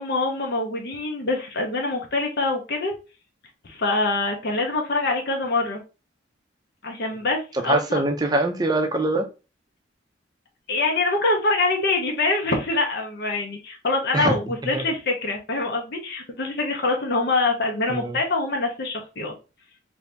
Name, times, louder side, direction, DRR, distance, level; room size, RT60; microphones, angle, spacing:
voice 1, 0.0-2.9 3.6-5.8 6.8-8.0 10.7-19.3, left 3 dB, 55° left, 0.7 m, -25 dB
voice 2, 7.5-9.3 14.1-14.3 14.7-14.8 17.9-18.2, right 2 dB, 20° right, 0.5 m, -23 dB
2.7 x 2.7 x 3.3 m
head